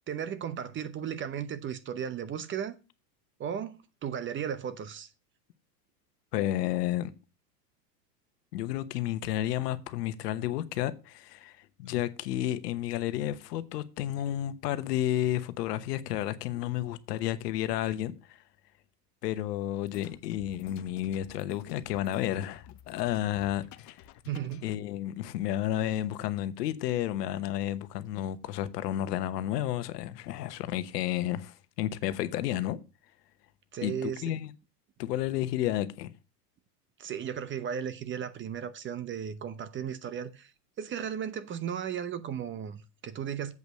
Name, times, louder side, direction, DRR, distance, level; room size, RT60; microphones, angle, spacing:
voice 1, 0.1-2.7 3.4-5.1 24.2-24.6 33.7-34.4 37.0-40.5 40.8-43.5, right 8 dB, 25° right, 0.7 m, -35 dB
voice 2, 6.3-7.1 8.5-18.4 19.2-24.1 24.6-32.8 33.8-34.5 35.0-36.1, left 13 dB, 75° left, 1.1 m, -31 dB
sound 1, 19.7-24.8, left 14 dB, 35° left, 0.7 m, -51 dB
8.0 x 5.3 x 6.3 m
hypercardioid pair, 115°, 49 cm